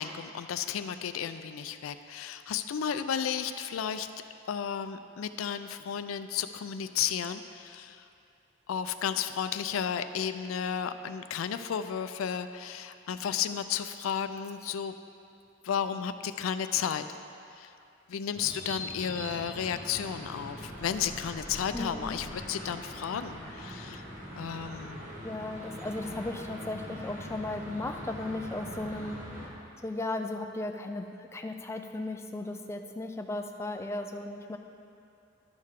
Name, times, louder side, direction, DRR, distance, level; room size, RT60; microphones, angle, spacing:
voice 1, 0.0-4.1 4.5-8.0 8.7-14.9 15.6-17.0 17.6-17.7 18.1-24.0 24.4-25.0, left 8 dB, 85° left, 10 dB, 0.4 m, -33 dB
sound 1, 18.3-29.5, equal, 40° right, 1.5 m, -42 dB
voice 2, 21.7-22.1 25.2-29.2 29.8-34.6, left 2 dB, 15° left, 4 dB, 0.4 m, -36 dB
11.5 x 6.5 x 3.7 m, 2.6 s
head